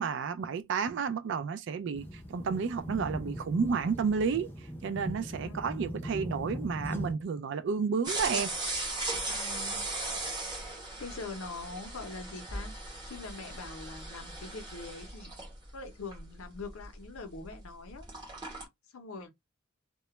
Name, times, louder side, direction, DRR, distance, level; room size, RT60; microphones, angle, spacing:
voice 1, 0.0-4.5 4.8-8.5, right 5 dB, 60° right, 0.3 m, -31 dB
sound 1, 1.9-7.1, equal, 10° left, 0.5 m, -39 dB
sound 2, 8.0-17.6 17.9-18.6, right 2 dB, 20° right, 0.8 m, -38 dB
voice 2, 9.3-9.9 11.0-12.7 13.0-15.3 15.7-18.1 18.9-19.3, left 3 dB, 85° left, 0.6 m, -43 dB
2.2 x 2.1 x 2.9 m
head